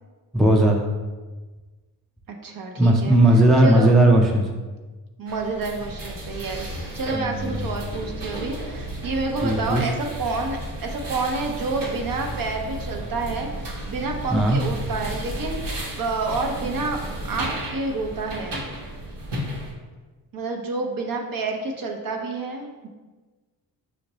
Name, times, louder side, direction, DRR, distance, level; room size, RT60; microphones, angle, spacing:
voice 1, 0.3-0.9 2.8-4.5 7.1-7.7 9.4-9.8 14.3-14.6, right 1 dB, ahead, 0 dB, 0.4 m, -17 dB
voice 2, 2.3-3.2 3.6-3.9 5.2-6.7 6.9-17.0 17.2-18.6 20.3-22.9, right 3 dB, 50° right, 2 dB, 0.9 m, -29 dB
sound 1, 5.3-19.7, right 1 dB, 65° right, 1.4 m, -33 dB
6.4 x 2.5 x 3.0 m, 1.3 s
cardioid pair, 80°, 45 cm